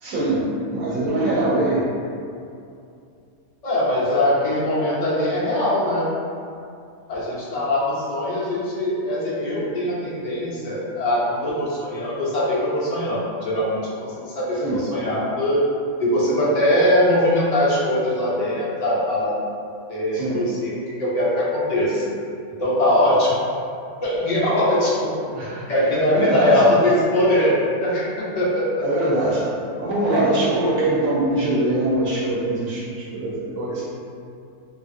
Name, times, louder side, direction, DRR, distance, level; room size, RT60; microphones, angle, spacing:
voice 1, 0.0-1.9 14.5-14.9 20.1-20.4 25.3-25.7 26.1-26.7 28.8-29.4 29.8-33.9, right 1 dB, 65° right, -7 dB, 1.1 m, -22 dB
voice 2, 3.6-6.1 7.1-14.1 14.3-15.6 16.0-19.4 19.9-22.1 22.6-23.4 24.0-25.0 25.7-28.1 28.4-29.1, left 1 dB, 90° left, -7 dB, 0.3 m, -21 dB
2.6 x 2.6 x 2.5 m, 2.5 s
omnidirectional pair, 1.5 m